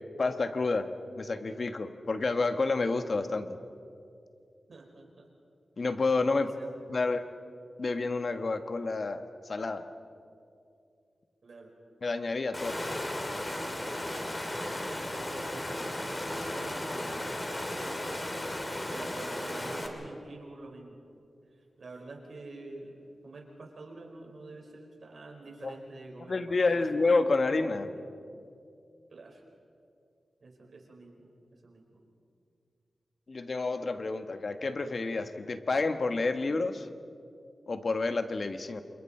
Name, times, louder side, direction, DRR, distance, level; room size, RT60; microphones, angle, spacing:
voice 1, 0.2-3.6 5.8-6.5 6.9-7.2 7.8-9.8 12.0-12.7 25.6-25.7 26.3-27.9 33.3-36.9 37.7-38.8, left 3 dB, 60° left, 8 dB, 1.3 m, -29 dB
voice 2, 4.7-5.3 6.3-7.2 11.4-11.7 12.5-12.6 15.1-15.7 16.0-18.3 18.9-21.0 21.8-26.9 27.6-28.1 29.1-29.4 30.4-31.3 31.6-32.0, right 2 dB, 70° right, 0 dB, 4.9 m, -47 dB
Water, 12.5-19.9, left 1 dB, 25° left, 3.3 m, -35 dB
28.5 x 27.5 x 4.4 m, 2.4 s
cardioid pair, 65°, 0 cm